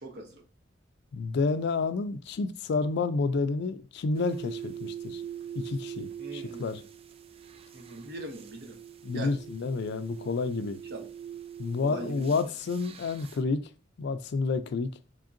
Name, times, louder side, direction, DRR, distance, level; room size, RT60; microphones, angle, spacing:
voice 1, 0.0-0.4 6.2-6.8 7.7-8.8 9.1-9.4 10.9-11.1 11.8-12.4, right 1 dB, 60° right, 0.8 m, -41 dB
voice 2, 1.1-5.2 5.6-6.8 9.0-10.8 11.6-13.6 14.0-14.9, left 4 dB, 60° left, 0.4 m, -30 dB
sound 1, 4.1-13.4, right 9 dB, 30° right, 0.3 m, -42 dB
3.7 x 3.5 x 2.5 m
head